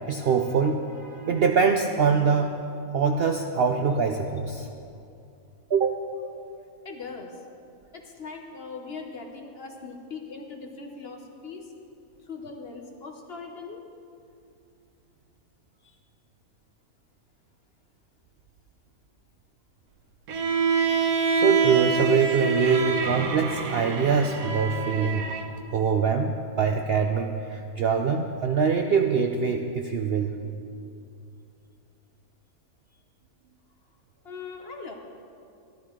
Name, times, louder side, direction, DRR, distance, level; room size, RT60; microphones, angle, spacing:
voice 1, 0.0-2.5 2.9-4.7 5.7-5.9 21.3-25.3 25.7-30.4, right 5 dB, 60° right, 4 dB, 0.6 m, -24 dB
voice 2, 6.8-7.4 7.9-11.7 12.2-13.8 15.8-16.0 34.2-34.9, left 4 dB, 50° left, 3 dB, 1.1 m, -40 dB
Bowed string instrument, 20.3-25.5, right 5 dB, 80° right, 1.3 m, -26 dB
13.0 x 12.5 x 3.7 m, 2.5 s
omnidirectional pair, 1.5 m